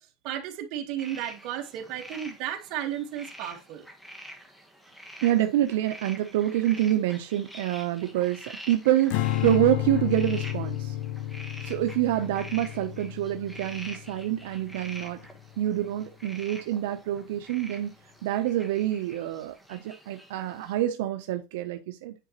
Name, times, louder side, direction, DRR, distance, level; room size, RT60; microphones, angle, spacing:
voice 1, 0.2-3.8, right 11 dB, 55° right, 1.3 m, -34 dB
sound 1, 1.0-20.7, equal, 5° left, 1.1 m, -46 dB
voice 2, 5.2-10.9 11.6-15.2 15.6-17.9 18.2-22.1, right 13 dB, 90° right, 0.6 m, -27 dB
Strum, 9.1-15.5, left 13 dB, 65° left, 0.4 m, -32 dB
9.2 x 4.0 x 2.9 m
supercardioid pair, 150°, 0 cm